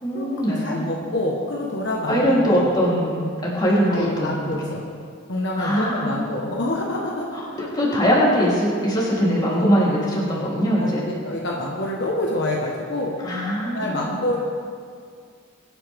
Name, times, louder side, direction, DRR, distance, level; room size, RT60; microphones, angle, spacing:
voice 1, 0.0-0.8 2.1-4.7 5.6-6.1 7.3-11.0 13.2-14.1, equal, 20° left, -6 dB, 3.7 m, -21 dB
voice 2, 0.6-2.6 3.9-4.9 5.3-7.4 10.8-14.4, left 1 dB, 60° left, -3 dB, 1.5 m, -27 dB
23.5 x 10.0 x 3.7 m, 2.1 s
head